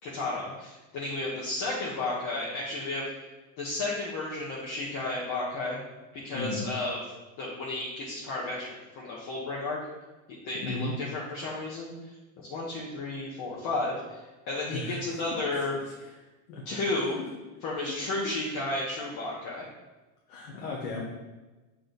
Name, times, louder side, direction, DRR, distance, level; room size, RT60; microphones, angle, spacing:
voice 1, 0.0-3.1 3.6-5.8 6.1-7.0 7.4-9.8 10.4-11.9 12.4-14.2 14.5-15.7 16.6-17.2 17.6-19.7, left 2 dB, 45° left, -5 dB, 1.4 m, -33 dB
voice 2, 6.3-6.7 10.6-11.0 14.7-15.2 16.0-16.1 16.5-16.8 20.3-21.0, left 2 dB, 90° left, -2 dB, 1.4 m, -35 dB
7.2 x 3.7 x 4.0 m, 1.1 s
supercardioid pair, 135°, 42 cm